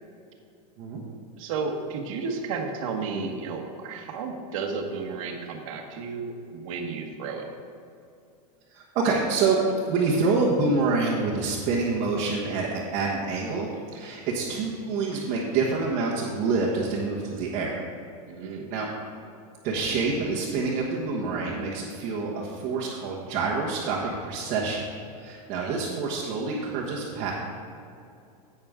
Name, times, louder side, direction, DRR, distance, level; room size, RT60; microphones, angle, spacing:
voice 1, 1.4-7.5 18.3-18.7 25.6-25.7, right 4 dB, 55° right, 3 dB, 1.5 m, -33 dB
voice 2, 8.7-9.6 9.9-17.8 18.4-18.9 19.6-24.9 25.2-27.3, right 4 dB, 35° right, -4 dB, 1.3 m, -27 dB
10.5 x 8.7 x 3.7 m, 2.5 s
supercardioid pair, 170°, 20 cm